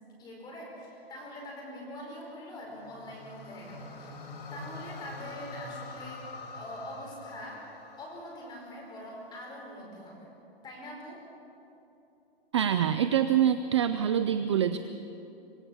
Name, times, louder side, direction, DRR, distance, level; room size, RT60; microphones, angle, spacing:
voice 1, 0.2-4.2 4.5-7.6 8.0-10.3 10.6-11.2, left 1 dB, 15° left, -1 dB, 4.6 m, -43 dB
sound 1, 2.7-9.0, left 3 dB, 70° left, 4.5 m, -45 dB
voice 2, 12.5-14.8, right 9 dB, 30° right, 10 dB, 0.4 m, -25 dB
26.0 x 17.5 x 7.0 m, 2.9 s
hypercardioid pair, 170°, 31 cm